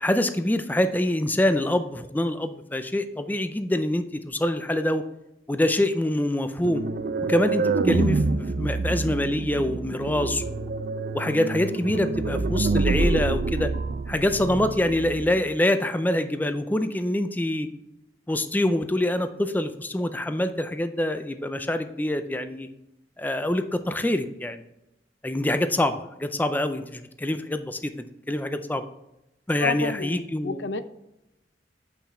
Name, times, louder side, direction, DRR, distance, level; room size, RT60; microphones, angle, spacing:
voice 1, 0.0-5.0 5.5-6.8 7.3-10.7 11.1-13.7 14.1-17.7 18.3-22.7 23.2-24.6 25.2-27.9 28.3-28.9 29.5-30.6, left 1 dB, 10° left, 9 dB, 0.4 m, -25 dB
sound 1, 6.6-15.4, right 3 dB, 55° right, 0.5 m, -27 dB
voice 2, 29.6-30.8, left 5 dB, 75° left, 11 dB, 0.6 m, -30 dB
8.4 x 5.8 x 4.3 m, 0.89 s
head